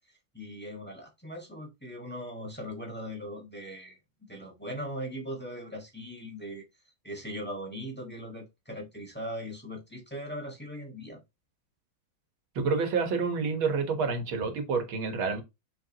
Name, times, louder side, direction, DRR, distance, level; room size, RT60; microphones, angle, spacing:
voice 1, 0.3-6.6 7.0-11.2, equal, 5° left, 1.4 m, -39 dB
voice 2, 12.6-15.4, right 4 dB, 90° right, 2.2 m, -28 dB
6.9 x 5.1 x 2.9 m
omnidirectional pair, 2.1 m